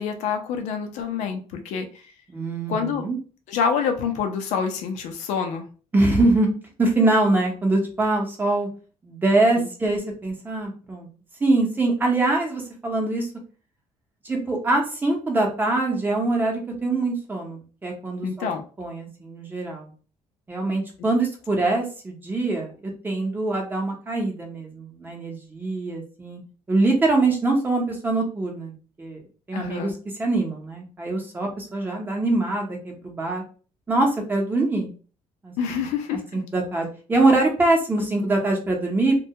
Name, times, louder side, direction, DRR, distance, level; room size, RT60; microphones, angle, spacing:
voice 1, 0.0-2.0 2.7-3.0 3.5-5.6 9.6-9.7 18.2-18.6 29.5-29.9 35.6-36.4, left 6 dB, 85° left, 5 dB, 0.5 m, -27 dB
voice 2, 2.3-3.2 5.9-6.5 6.8-8.7 9.0-11.1 11.4-13.3 14.2-18.5 18.8-19.9 20.5-26.4 26.7-29.2 29.5-29.9 30.2-33.4 33.9-34.9 35.4-35.8 36.3-39.2, right 2 dB, 15° right, 0 dB, 0.6 m, -23 dB
2.2 x 2.2 x 2.7 m, 0.37 s
cardioid pair, 140°, 12 cm